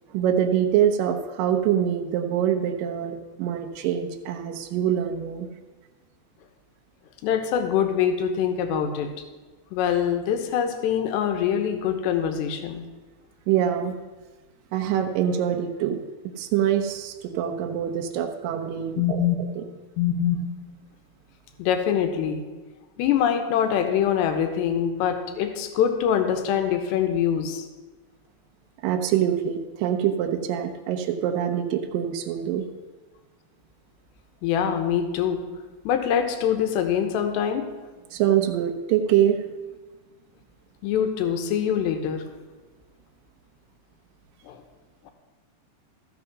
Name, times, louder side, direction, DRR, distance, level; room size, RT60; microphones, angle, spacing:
voice 1, 0.1-5.5 13.5-14.0 14.7-19.2 19.6-19.7 28.8-32.7 38.1-39.4, right 10 dB, 85° right, 5 dB, 1.9 m, -24 dB
voice 2, 7.2-9.1 9.7-12.8 19.0-19.4 20.0-20.4 21.6-22.4 23.0-27.7 34.4-35.4 35.8-37.7 40.8-42.2 44.4-44.6 45.0-45.1, left 8 dB, 80° left, 6 dB, 3.1 m, -24 dB
14.0 x 6.6 x 5.9 m, 1.3 s
omnidirectional pair, 5.0 m